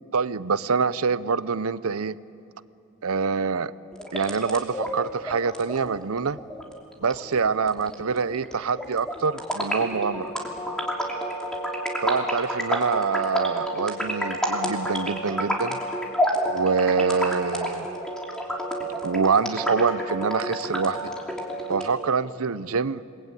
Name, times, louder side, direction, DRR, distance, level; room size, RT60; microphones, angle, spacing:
voice 1, 0.1-2.2 3.0-3.7 4.1-6.4 7.0-10.3 12.0-15.8 16.4-17.9 19.0-21.1 21.7-23.0, right 5 dB, 85° right, 16 dB, 0.7 m, -25 dB
sound 1, 3.9-21.9, equal, 5° left, 2.9 m, -30 dB
29.5 x 20.0 x 9.0 m, 2.7 s
head